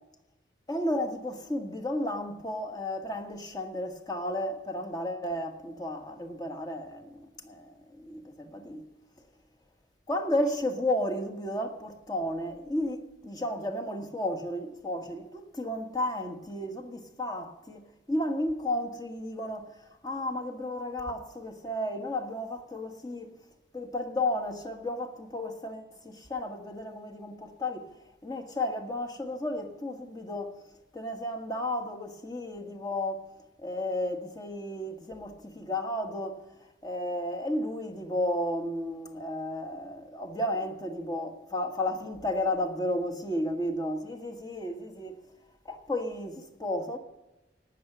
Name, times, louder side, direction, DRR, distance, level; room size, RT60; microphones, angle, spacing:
voice 1, 0.7-8.8 10.1-17.8 18.1-23.3 23.7-27.9 28.2-30.6 30.9-33.3 33.6-36.4 36.8-45.2 45.6-47.0, left 1 dB, 20° left, 1.4 m, -33 dB
18.5 x 6.7 x 6.0 m
head